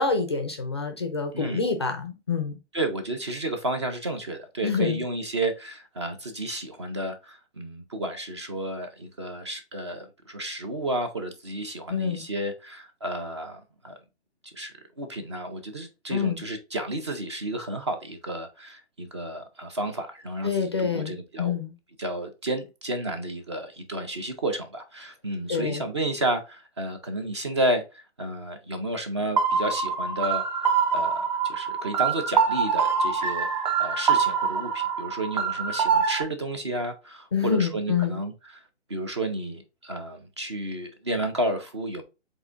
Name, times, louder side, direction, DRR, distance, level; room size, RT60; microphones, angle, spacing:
voice 1, 0.0-2.5 4.6-5.0 11.9-12.2 16.1-16.4 20.4-21.7 25.5-25.8 37.3-38.2, left 5 dB, 25° left, 0.4 m, -27 dB
voice 2, 2.7-14.0 14.4-21.6 22.0-33.5 33.8-38.6 38.9-42.0, right 1 dB, 25° right, 0.5 m, -32 dB
sound 1, 29.4-36.2, right 6 dB, 40° right, 0.9 m, -25 dB
7.9 x 2.6 x 2.4 m
hypercardioid pair, 160°, 34 cm